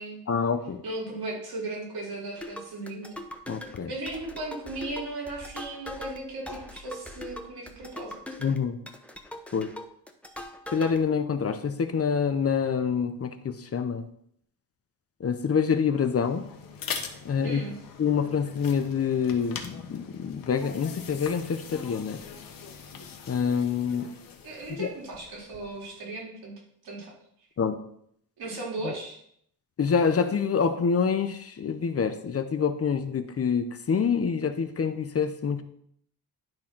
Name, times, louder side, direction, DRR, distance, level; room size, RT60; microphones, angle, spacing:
voice 1, 0.3-0.8 3.5-3.9 8.4-8.8 9.5-9.7 10.7-14.0 15.2-16.5 17.2-17.6 18.0-22.2 23.3-24.1 24.8-24.9 27.6-27.8 28.8-28.9 29.8-35.6, left 6 dB, 40° left, 9 dB, 0.8 m, -26 dB
voice 2, 0.8-3.2 3.9-8.2 17.4-17.8 24.4-26.5 26.8-27.1 28.4-29.2, right 2 dB, 70° right, -3 dB, 3.8 m, -36 dB
sound 1, 2.4-11.0, left 1 dB, 5° left, 0.9 m, -41 dB
sound 2, 16.0-25.9, left 6 dB, 60° left, 1.3 m, -42 dB
10.5 x 3.8 x 5.9 m, 0.67 s
cardioid pair, 105°, 39 cm